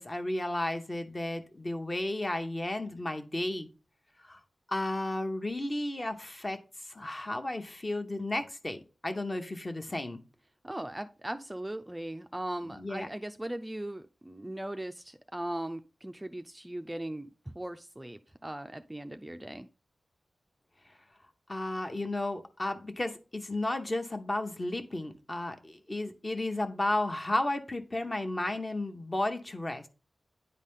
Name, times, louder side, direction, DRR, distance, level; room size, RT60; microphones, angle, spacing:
voice 1, 0.0-3.7 4.2-4.4 4.7-6.6 6.9-10.2 12.8-13.1 21.5-29.9, left 1 dB, 30° left, 1.0 m, -33 dB
voice 2, 10.6-19.7, right 1 dB, 15° right, 0.4 m, -39 dB
9.6 x 4.1 x 3.6 m
wide cardioid pair, 85°, 0 cm